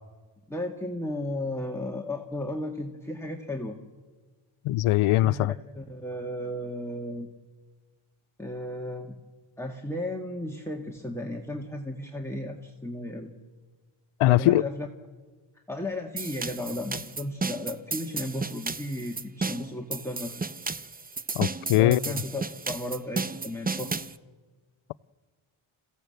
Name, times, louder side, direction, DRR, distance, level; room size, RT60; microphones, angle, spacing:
voice 1, 0.5-3.8 5.2-5.5 5.8-7.3 8.4-9.2 9.6-13.3 14.3-14.9 15.7-20.4 21.7-23.9, left 1 dB, 5° left, 1.8 m, -34 dB
voice 2, 4.6-5.5 14.2-14.6 21.3-22.0, left 16 dB, 85° left, 0.6 m, -21 dB
sound 1, 16.2-24.2, right 4 dB, 20° right, 0.7 m, -33 dB
27.5 x 16.0 x 7.8 m
cardioid pair, 85°, 49 cm